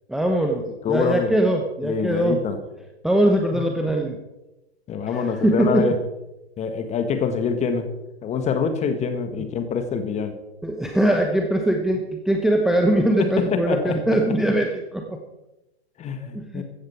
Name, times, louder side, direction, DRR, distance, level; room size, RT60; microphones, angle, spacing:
voice 1, 0.1-2.4 3.0-4.2 5.1-5.9 10.6-15.2 16.2-16.6, right 1 dB, ahead, 3 dB, 1.0 m, -21 dB
voice 2, 0.8-1.3 1.8-2.6 3.5-3.6 4.9-5.9 6.6-7.9 8.2-10.3 13.2-14.0 16.0-16.6, left 5 dB, 20° left, 9 dB, 1.7 m, -25 dB
15.5 x 13.5 x 4.6 m, 0.99 s
figure-of-eight pair, 105°, 32 cm